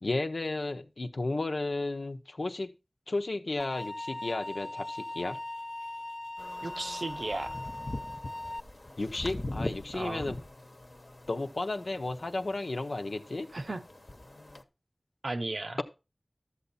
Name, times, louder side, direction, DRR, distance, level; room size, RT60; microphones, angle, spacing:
voice 1, 0.0-2.7 3.1-5.4 9.0-10.4 11.3-13.5, left 2 dB, 80° left, 0.9 m, -33 dB
sound 1, 3.6-8.6, left 2 dB, 35° left, 0.4 m, -39 dB
sound 2, 6.4-14.6, left 2 dB, 50° left, 1.1 m, -42 dB
voice 2, 6.6-7.6 9.9-10.3 13.5-13.8 15.2-15.8, right 2 dB, 70° right, 0.8 m, -35 dB
12.5 x 7.0 x 4.2 m
wide cardioid pair, 45°, 0 cm